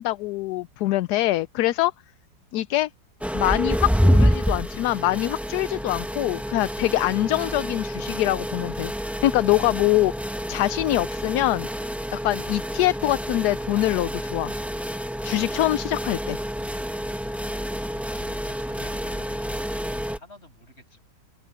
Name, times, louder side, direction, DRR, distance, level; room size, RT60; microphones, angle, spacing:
voice 1, 0.0-1.9 2.5-2.9 3.3-8.9 9.2-10.1 10.5-11.7 12.1-14.5 15.2-16.4, left 16 dB, 75° left, 1.1 m, -24 dB
sound 1, 3.2-20.2, equal, ahead, 1.1 m, -27 dB
voice 2, 17.7-21.0, left 2 dB, 35° left, 8.1 m, -50 dB
open air
omnidirectional pair, 1.9 m